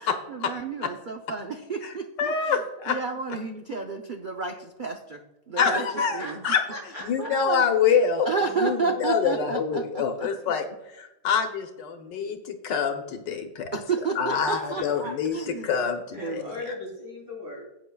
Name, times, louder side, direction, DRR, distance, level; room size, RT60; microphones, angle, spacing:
voice 1, 0.3-2.3 2.9-5.2 5.5-5.8 6.1-6.3 7.2-7.6 8.3-9.8 13.7-15.7 16.2-16.5, right 4 dB, 90° right, 3 dB, 0.4 m, -31 dB
voice 2, 1.8-3.0 5.6-6.6 7.0-10.7 10.9-13.8 14.2-16.7, left 6 dB, 80° left, 5 dB, 1.6 m, -26 dB
voice 3, 5.7-7.3 14.1-15.2 16.1-17.7, left 1 dB, 55° right, -4 dB, 4.0 m, -38 dB
16.0 x 8.8 x 2.3 m, 0.94 s
omnidirectional pair, 1.9 m